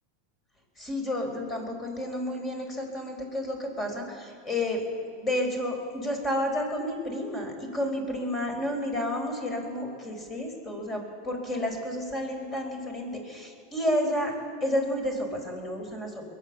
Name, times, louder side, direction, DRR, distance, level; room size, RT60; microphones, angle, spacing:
voice 1, 0.8-4.9 5.2-14.3 14.6-16.2, left 1 dB, 25° left, 3 dB, 4.4 m, -31 dB
22.0 x 9.0 x 7.3 m, 2.5 s
hypercardioid pair, 105°, 0 cm